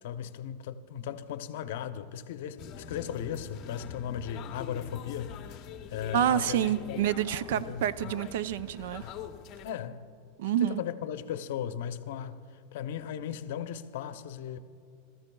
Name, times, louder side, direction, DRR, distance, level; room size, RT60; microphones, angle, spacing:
voice 1, 0.0-7.0 7.5-7.9 9.0-9.1 9.6-10.1 10.5-14.6, left 9 dB, 70° left, 0.6 m, -37 dB
sound 1, 2.6-9.7, left 8 dB, 35° left, 0.7 m, -44 dB
voice 2, 6.1-9.1 10.4-10.8, right 10 dB, 70° right, 0.4 m, -28 dB
23.5 x 14.0 x 2.3 m
supercardioid pair, 155°, 0 cm